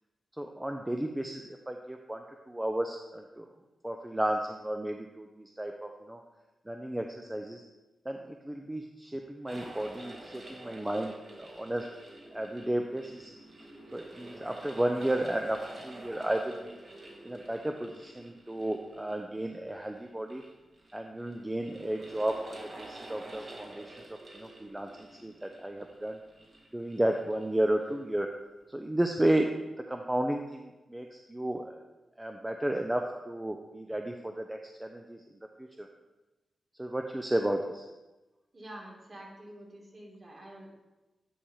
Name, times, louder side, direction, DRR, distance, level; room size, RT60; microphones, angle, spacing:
voice 1, 0.4-3.5 3.8-6.2 6.7-7.6 8.1-11.1 11.4-11.9 12.3-13.3 13.9-15.6 15.8-16.8 17.2-20.4 20.9-23.9 24.3-26.2 26.7-28.3 28.7-29.6 29.9-31.8 32.2-35.2 35.6-35.9 36.8-37.9, right 1 dB, 10° right, 3 dB, 0.5 m, -33 dB
sound 1, 9.5-28.1, right 1 dB, 50° right, 1.7 m, -49 dB
voice 2, 38.5-40.7, right 1 dB, 35° right, -2 dB, 2.3 m, -47 dB
9.9 x 3.3 x 5.5 m, 1.1 s
cardioid pair, 80°, 0 cm